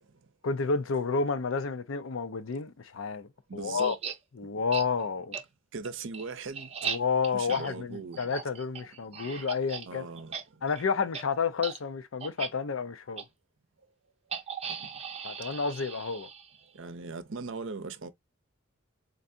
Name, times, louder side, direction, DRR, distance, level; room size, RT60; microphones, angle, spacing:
voice 1, 0.4-4.0 4.4-5.4 6.8-10.1 10.6-13.2 15.2-16.3, left 5 dB, 70° left, 0.5 m, -30 dB
voice 2, 3.5-4.0 5.7-6.7 7.3-8.2 9.9-10.4 14.8-14.9 16.8-18.1, right 4 dB, 65° right, 0.6 m, -39 dB
sound 1, 3.8-4.2 4.7-4.9 5.3-5.4 5.8-9.9 10.2-10.4 10.7-10.8 11.1-11.2 11.6-11.8 12.2-12.5 13.2-13.3 14.3-16.7, right 6 dB, 30° right, 0.8 m, -38 dB
3.9 x 3.4 x 2.6 m
head